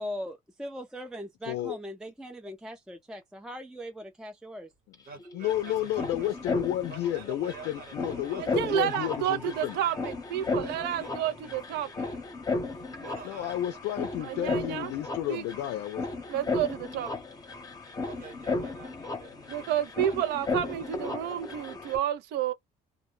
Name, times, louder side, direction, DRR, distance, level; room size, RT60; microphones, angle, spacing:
voice 1, 0.0-4.7, equal, 5° right, 0.4 m, -40 dB
voice 2, 1.5-1.8 4.9-5.0 5.3-9.8 13.2-16.1, left 13 dB, 80° left, 0.4 m, -32 dB
sound 1, 4.9-5.0 5.2-22.0, left 3 dB, 20° left, 0.8 m, -35 dB
voice 3, 5.0-6.3 6.9-10.1 10.4-12.2 13.0-13.5 18.0-19.7 20.0-20.2 20.6-20.9, right 5 dB, 60° right, 1.1 m, -48 dB
voice 4, 8.6-12.1 14.3-14.9 15.3-15.4 16.3-17.1 19.5-22.5, right 11 dB, 80° right, 0.5 m, -30 dB
2.1 x 2.1 x 3.0 m
cardioid pair, 110°, 17 cm